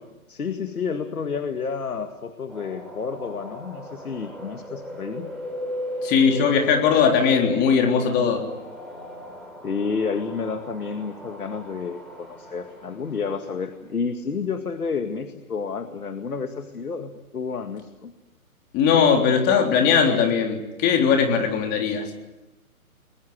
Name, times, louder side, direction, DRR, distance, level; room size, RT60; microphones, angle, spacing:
voice 1, 0.3-5.3 9.6-18.1, left 5 dB, 80° left, 7 dB, 2.1 m, -30 dB
sound 1, 2.5-13.7, equal, ahead, 5.2 m, -37 dB
voice 2, 6.0-8.4 18.7-22.0, left 6 dB, 25° left, 2 dB, 3.7 m, -19 dB
30.0 x 21.5 x 8.1 m, 1.0 s
hypercardioid pair, 140°, 44 cm